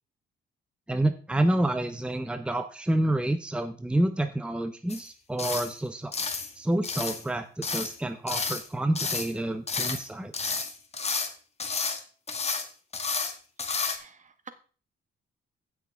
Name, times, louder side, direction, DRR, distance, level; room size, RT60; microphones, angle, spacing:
voice 1, 0.9-6.1 6.6-10.6, right 1 dB, 5° right, 8 dB, 0.9 m, -28 dB
sound 1, 4.9-5.1 5.4-5.7 6.1-6.5 6.8-7.2 7.6-8.0 8.3-8.7 8.9-9.3 9.7-10.1 10.3-11.3 11.6-12.0 12.3-12.7 12.9-13.3 13.6-14.0, left 4 dB, 30° left, 1.7 m, -31 dB
voice 2, 13.8-14.5, right 5 dB, 40° right, 9 dB, 1.5 m, -49 dB
15.5 x 6.2 x 3.6 m, 0.38 s
cardioid pair, 90°, 20 cm